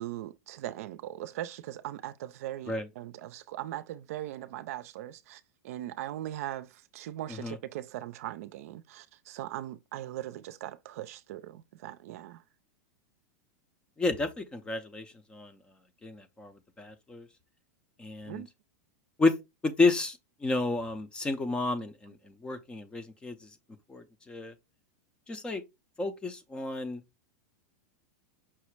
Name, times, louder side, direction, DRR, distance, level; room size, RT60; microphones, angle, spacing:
voice 1, 0.0-12.4 18.3-18.5, right 13 dB, 60° right, 0.5 m, -40 dB
voice 2, 14.0-15.6 16.0-17.3 18.0-18.4 19.2-19.3 19.6-23.5 23.9-24.5 25.3-25.6 26.0-27.0, left 3 dB, 10° left, 0.5 m, -31 dB
5.7 x 2.0 x 4.5 m
supercardioid pair, 155°, 9 cm